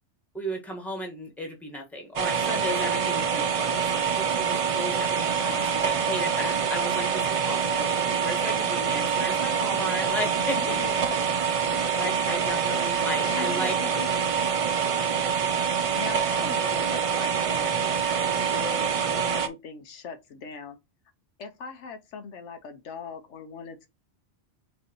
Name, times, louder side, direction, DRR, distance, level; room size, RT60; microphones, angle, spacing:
voice 1, 0.3-7.9 8.2-10.8 11.9-14.0, left 1 dB, ahead, 1.3 m, -34 dB
sound 1, 2.2-19.5, right 7 dB, 55° right, 0.3 m, -26 dB
voice 2, 5.3-6.1 10.4-11.3 13.2-14.2 14.7-14.9 15.9-17.7 18.6-20.8 21.4-23.9, left 5 dB, 85° left, 1.1 m, -40 dB
5.2 x 3.3 x 3.0 m
omnidirectional pair, 1.2 m